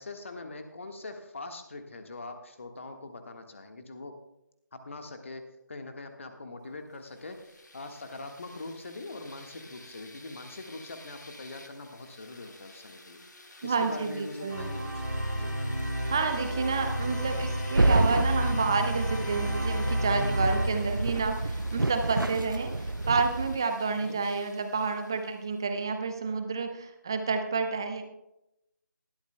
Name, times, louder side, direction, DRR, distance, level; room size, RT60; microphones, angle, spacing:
voice 1, 0.0-4.2 4.7-7.4 7.7-13.2 13.6-15.1 15.4-15.5 23.8-24.2, left 2 dB, 40° left, 6 dB, 1.4 m, -42 dB
sound 1, 6.9-25.6, left 2 dB, 60° left, 1.6 m, -49 dB
voice 2, 13.6-14.7 16.1-28.0, right 4 dB, 10° right, 7 dB, 0.5 m, -30 dB
sound 2, 14.5-21.5, equal, 65° right, 2.9 m, -32 dB
sound 3, 17.7-23.6, right 2 dB, 90° right, 0.5 m, -29 dB
19.0 x 12.5 x 2.2 m, 0.87 s
figure-of-eight pair, 160°, 11 cm